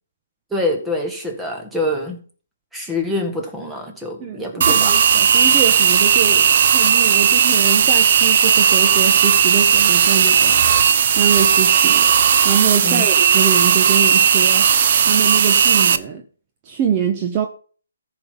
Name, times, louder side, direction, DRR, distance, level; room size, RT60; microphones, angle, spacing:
voice 1, 0.5-2.2 2.7-4.9 12.8-13.1, left 1 dB, 5° right, 1.8 m, -25 dB
voice 2, 4.2-10.7 11.1-12.1 12.4-14.7 15.0-16.2 16.6-17.5, right 7 dB, 25° right, 1.1 m, -24 dB
sound 1, 4.6-16.0, right 8 dB, 50° right, 0.7 m, -15 dB
14.0 x 5.5 x 5.7 m
hypercardioid pair, 150°, 0 cm